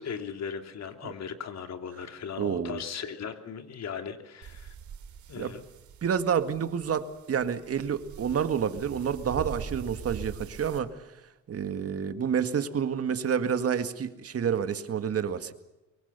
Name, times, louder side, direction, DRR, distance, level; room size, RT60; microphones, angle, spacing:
voice 1, 0.0-4.7 5.3-5.6, left 7 dB, 60° left, 6 dB, 3.0 m, -38 dB
voice 2, 2.4-2.8 5.4-5.5 6.0-11.0 11.5-15.5, right 7 dB, 50° right, 9 dB, 2.1 m, -29 dB
sound 1, 4.4-10.8, right 8 dB, 70° right, 3.1 m, -43 dB
24.0 x 23.0 x 6.9 m, 1.0 s
cardioid pair, 90°, 30 cm